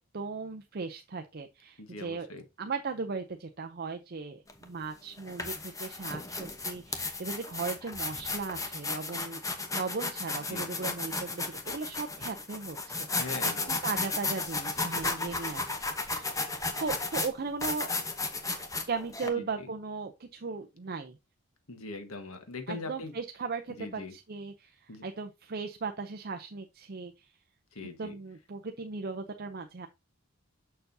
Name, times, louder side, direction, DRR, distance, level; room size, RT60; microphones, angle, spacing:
voice 1, 0.0-2.3 2.6-9.4 9.7-17.9 18.9-21.2 22.7-27.4 27.8-29.9, right 4 dB, 45° right, 0.6 m, -37 dB
voice 2, 1.8-2.4 10.5-10.7 13.1-13.7 19.3-19.7 21.7-23.1 23.8-24.1 24.9-25.0 27.7-28.1, left 3 dB, 80° left, 1.5 m, -41 dB
sound 1, 4.5-4.6 5.2-19.3, left 3 dB, 15° left, 0.9 m, -34 dB
6.7 x 6.7 x 2.7 m
head